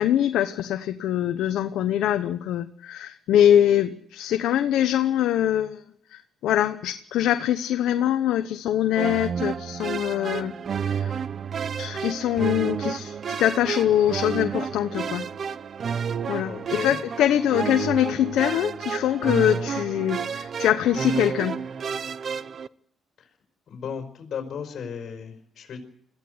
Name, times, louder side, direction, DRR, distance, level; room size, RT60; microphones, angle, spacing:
voice 1, 0.0-5.8 6.1-10.5 10.9-11.2 11.8-15.2 15.9-16.5 16.8-21.6, left 11 dB, 85° left, 8 dB, 1.0 m, -23 dB
sound 1, 8.9-22.7, right 7 dB, 50° right, 0.8 m, -30 dB
voice 2, 16.4-17.0 23.2-23.3 23.7-25.8, left 7 dB, 60° left, 3 dB, 4.7 m, -35 dB
22.0 x 15.0 x 7.9 m, 0.68 s
cardioid pair, 90°, 0 cm